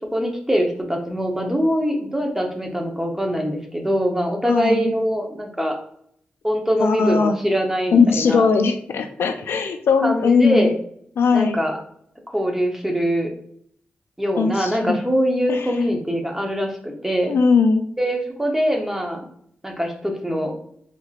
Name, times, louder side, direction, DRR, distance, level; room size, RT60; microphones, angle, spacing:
voice 1, 0.1-5.7 6.4-8.5 10.0-10.7 11.3-11.8 12.3-13.3 14.2-17.4 18.0-19.2 19.6-20.5, equal, 10° right, 2 dB, 0.8 m, -23 dB
voice 2, 4.5-4.9 6.8-7.4 7.9-10.7 11.2-11.6 14.4-15.0 15.5-15.7 17.3-17.9, left 5 dB, 75° left, 8 dB, 0.4 m, -19 dB
3.6 x 2.9 x 2.4 m, 0.65 s
cardioid pair, 60°, 4 cm